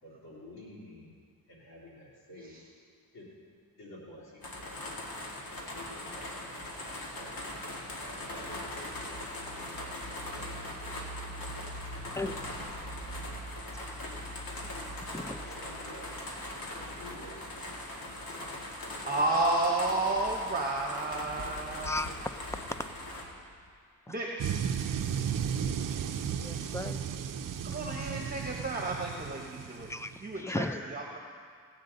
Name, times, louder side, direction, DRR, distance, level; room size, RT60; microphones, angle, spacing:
voice 1, 0.0-1.1 1.5-2.6 3.1-3.3 3.8-4.9 5.5-7.4 8.0-10.7 15.3-16.5 16.7-17.5 27.7-27.8, left 1 dB, 90° left, -6 dB, 3.0 m, -51 dB
sound 1, 4.4-23.2, left 1 dB, 70° left, 2.0 m, -40 dB
voice 2, 15.0-15.4 21.8-22.1 26.3-27.0 29.9-30.8, left 2 dB, 10° left, 10 dB, 0.5 m, -36 dB
voice 3, 19.0-22.0 24.1-24.4 27.6-29.9 30.2-31.2, right 2 dB, 25° right, 0 dB, 1.2 m, -31 dB
sound 2, 19.2-23.8, left 2 dB, 35° left, 1.0 m, -52 dB
sound 3, 24.4-30.3, right 8 dB, 60° right, 0.6 m, -34 dB
17.5 x 8.5 x 4.0 m, 2.1 s
cardioid pair, 80°, 36 cm